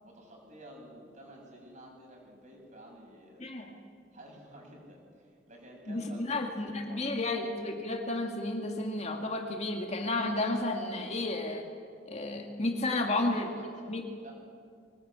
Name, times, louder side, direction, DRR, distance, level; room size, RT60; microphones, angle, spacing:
voice 1, 0.0-3.5 4.1-7.4 12.9-14.3, right 1 dB, 40° right, 0 dB, 7.1 m, -51 dB
voice 2, 3.4-3.8 5.9-11.7 12.1-13.5 13.9-14.1, left 2 dB, 35° left, 3 dB, 2.1 m, -32 dB
23.5 x 19.5 x 8.8 m, 2.2 s
head